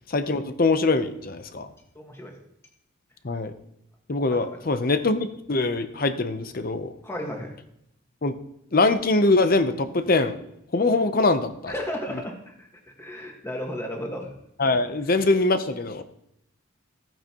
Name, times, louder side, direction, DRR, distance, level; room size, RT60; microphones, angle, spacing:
voice 1, 0.1-1.7 3.2-3.5 4.1-6.9 8.2-8.3 8.7-10.3 10.7-11.7 14.6-16.0, left 3 dB, 40° left, 10 dB, 0.7 m, -23 dB
voice 2, 1.9-2.4 4.3-4.7 7.0-7.5 11.7-12.7 13.0-14.3 15.0-15.1, left 1 dB, 10° left, 1 dB, 1.6 m, -34 dB
15.0 x 8.9 x 3.0 m, 0.77 s
head